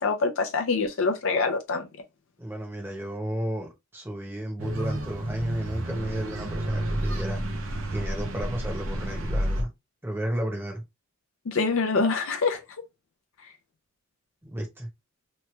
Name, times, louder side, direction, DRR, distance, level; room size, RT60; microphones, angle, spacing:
voice 1, 0.0-1.9 11.5-12.6, left 4 dB, 65° left, 0.5 m, -25 dB
voice 2, 2.4-7.4 7.9-9.7 10.0-10.8 14.4-14.9, right 1 dB, 10° right, 0.8 m, -32 dB
sound 1, 4.6-9.6, right 1 dB, 65° right, 0.7 m, -31 dB
3.1 x 2.2 x 3.1 m
head